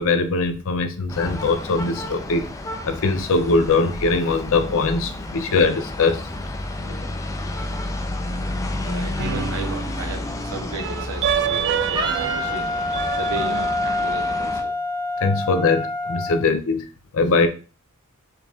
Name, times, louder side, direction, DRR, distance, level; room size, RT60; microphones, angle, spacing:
voice 1, 0.0-2.5 2.8-6.2 15.2-16.9 17.1-17.5, left 3 dB, 65° left, 0.5 m, -21 dB
sound 1, 1.1-14.6, left 1 dB, 15° left, 0.4 m, -31 dB
voice 2, 6.7-7.1 8.0-8.2 8.8-12.6 13.2-14.8 16.3-16.4 17.4-17.5, right 2 dB, 70° right, 0.9 m, -35 dB
sound 2, 9.2-10.3 10.8-14.1, right 8 dB, 55° right, 0.3 m, -27 dB
Wind instrument woodwind instrument, 12.0-16.4, left 1 dB, 20° right, 0.7 m, -26 dB
4.5 x 2.4 x 3.4 m
head